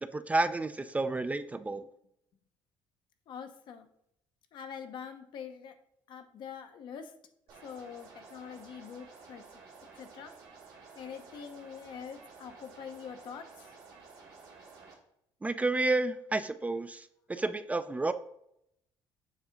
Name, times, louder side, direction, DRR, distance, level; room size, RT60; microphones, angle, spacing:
voice 1, 0.1-1.8 15.4-18.1, right 2 dB, 15° right, 11 dB, 0.4 m, -30 dB
voice 2, 3.3-3.9 4.5-5.7 6.1-7.1 7.6-9.4 10.0-10.3 11.0-13.7, left 7 dB, 65° left, 7 dB, 0.8 m, -44 dB
sound 1, 7.5-14.9, right 4 dB, 75° right, 2.0 m, -53 dB
7.1 x 2.7 x 5.0 m, 0.76 s
supercardioid pair, 85°, 9 cm